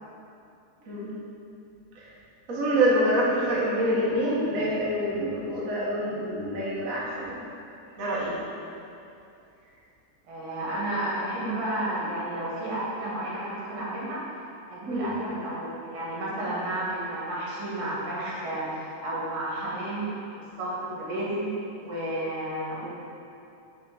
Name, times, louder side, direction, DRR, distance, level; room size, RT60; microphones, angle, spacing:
voice 1, 2.5-7.4 8.0-8.4 14.9-15.1, right 1 dB, 70° right, -6 dB, 0.8 m, -26 dB
voice 2, 10.3-14.2 14.7-20.1 20.4-21.5 21.8-22.9, right 1 dB, 85° right, -7 dB, 3.1 m, -32 dB
7.2 x 3.6 x 4.9 m, 2.6 s
omnidirectional pair, 3.5 m